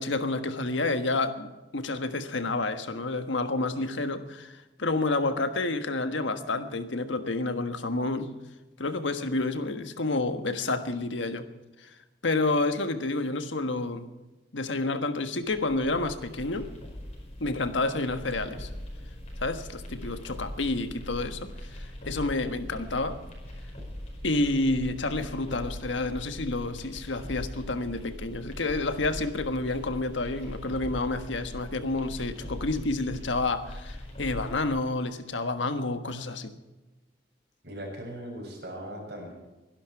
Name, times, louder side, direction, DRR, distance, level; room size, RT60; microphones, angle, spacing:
voice 1, 0.0-8.3 8.8-11.5 11.8-11.9 12.2-14.1 14.5-16.7 17.4-18.7 19.4-23.2 24.2-36.5, left 2 dB, 80° left, 9 dB, 1.4 m, -29 dB
sound 1, 15.4-34.7, left 1 dB, 35° left, 5.3 m, -41 dB
voice 2, 37.6-39.3, right 1 dB, 55° right, 0 dB, 6.6 m, -39 dB
23.0 x 11.5 x 4.7 m, 1.1 s
head